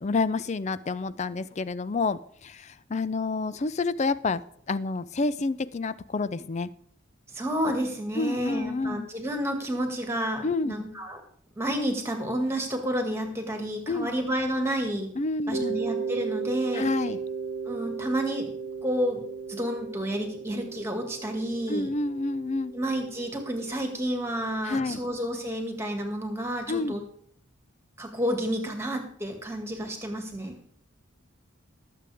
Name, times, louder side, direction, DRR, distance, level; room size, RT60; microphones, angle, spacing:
voice 1, 0.0-4.4 4.7-6.7 8.2-9.1 10.4-10.8 13.9-14.1 15.2-15.8 16.7-17.2 21.7-22.7 24.6-25.0 26.7-27.0, left 3 dB, 30° left, 16 dB, 0.4 m, -29 dB
voice 2, 7.3-11.2 11.6-15.1 15.5-16.9 17.7-18.5 18.8-19.2 19.5-21.9 22.7-27.0 28.0-30.6, equal, 10° right, 4 dB, 2.0 m, -30 dB
Mallet percussion, 15.5-24.1, right 5 dB, 70° right, 1.0 m, -35 dB
19.5 x 7.7 x 3.5 m, 0.64 s
head